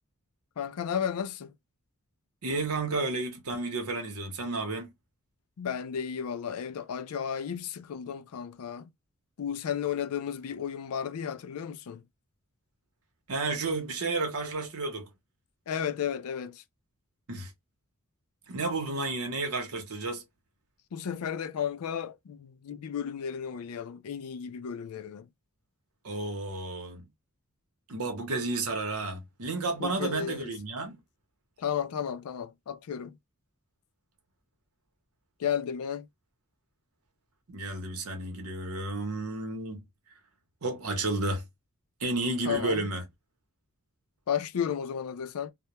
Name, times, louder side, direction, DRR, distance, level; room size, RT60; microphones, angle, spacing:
voice 1, 0.6-1.5 5.6-8.9 9.4-12.0 15.7-16.6 20.9-25.3 29.8-30.5 31.6-33.2 35.4-36.1 42.5-42.9 44.3-45.5, left 8 dB, 75° left, 0.4 m, -33 dB
voice 2, 2.4-4.9 13.3-15.1 17.3-17.5 18.5-20.2 26.0-27.1 27.9-31.0 37.5-39.8 40.6-41.5 42.0-43.0, right 3 dB, 75° right, 0.8 m, -32 dB
2.2 x 2.1 x 2.8 m
head